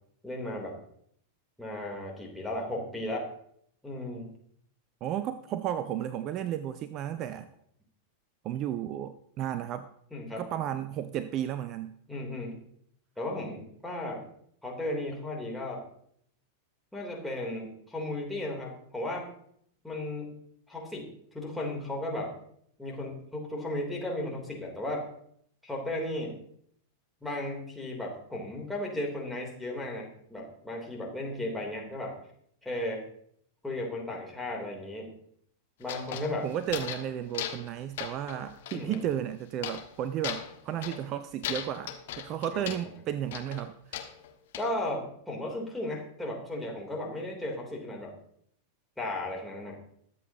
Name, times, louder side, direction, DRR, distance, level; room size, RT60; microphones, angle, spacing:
voice 1, 0.2-0.8 1.6-3.3 3.8-4.3 10.1-10.4 12.1-12.6 13.2-14.2 14.6-15.8 16.9-19.3 19.8-20.3 20.7-22.3 22.8-25.1 25.6-26.4 27.2-32.2 32.6-33.1 33.6-35.2 35.8-36.5 38.7-39.0 42.5-42.8 44.6-48.2 49.0-49.8, left 1 dB, 5° left, -2 dB, 3.4 m, -35 dB
voice 2, 5.0-7.5 8.4-9.9 10.4-11.9 36.1-44.0, right 10 dB, 35° right, 13 dB, 0.6 m, -33 dB
sound 1, 35.8-37.1 37.3-37.7 38.0-39.0 39.6-39.9 40.2-41.1 41.4-42.9 43.3-44.7, left 10 dB, 55° left, 1.3 m, -38 dB
21.5 x 8.0 x 2.9 m, 0.66 s
figure-of-eight pair, 90°, 0 cm